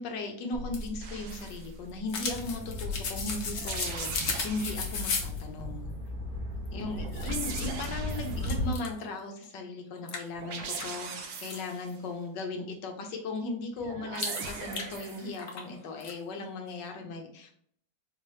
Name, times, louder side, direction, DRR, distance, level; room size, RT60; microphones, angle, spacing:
voice 1, 0.0-5.9 6.7-17.5, left 3 dB, 70° left, 3 dB, 1.4 m, -37 dB
sound 1, 0.5-5.4 6.6-6.7 7.1-7.9 8.4-9.0 9.4-9.5 10.1-11.6 14.1-15.7 16.0-16.1, left 4 dB, 55° left, 0.8 m, -36 dB
sound 2, 1.0-1.7 3.5-5.1 6.9-8.6 10.3-12.0 13.8-15.4, right 5 dB, 90° right, 1.5 m, -40 dB
sound 3, 2.2-8.7, left 1 dB, 55° right, 1.8 m, -36 dB
4.4 x 2.9 x 3.2 m, 0.64 s
omnidirectional pair, 2.0 m